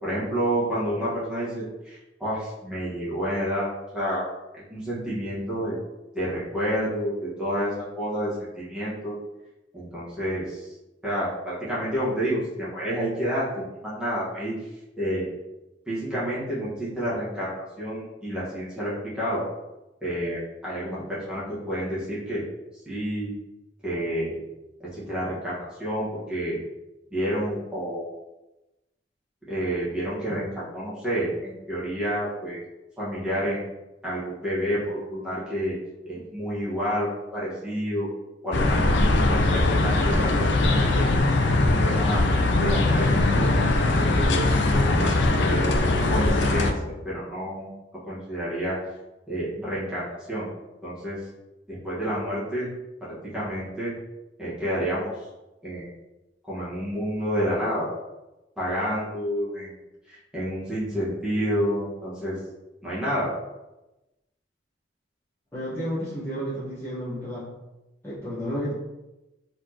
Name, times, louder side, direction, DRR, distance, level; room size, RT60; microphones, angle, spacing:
voice 1, 0.0-4.2 4.5-5.7 6.1-9.2 9.7-10.7 11.0-14.5 15.0-15.3 15.9-19.4 20.0-22.4 22.8-23.3 23.8-24.4 24.8-26.6 27.1-28.1 29.5-32.6 33.0-33.6 34.0-35.8 36.0-38.1 38.4-41.0 41.6-47.7 48.0-48.8 49.3-50.5 50.8-51.2 51.7-52.7 53.2-53.9 54.4-55.1 55.6-55.9 56.5-57.9 58.6-59.7 60.1-62.4 62.8-63.3, equal, 5° right, -10 dB, 1.5 m, -29 dB
sound 1, 38.5-46.7, left 2 dB, 65° left, 0.5 m, -21 dB
voice 2, 65.5-67.4 68.0-68.7, equal, 15° left, -11 dB, 1.3 m, -31 dB
4.4 x 3.7 x 3.0 m, 1.0 s
head